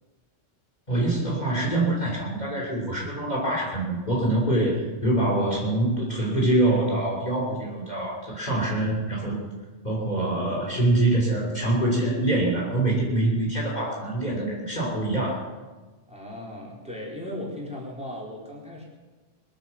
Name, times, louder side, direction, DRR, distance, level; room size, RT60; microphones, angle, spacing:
voice 1, 0.9-9.4 9.8-15.5, right 1 dB, 35° left, -3 dB, 3.3 m, -25 dB
voice 2, 16.1-18.8, left 1 dB, 5° right, -4 dB, 3.9 m, -37 dB
22.5 x 9.0 x 7.1 m, 1.3 s
omnidirectional pair, 1.3 m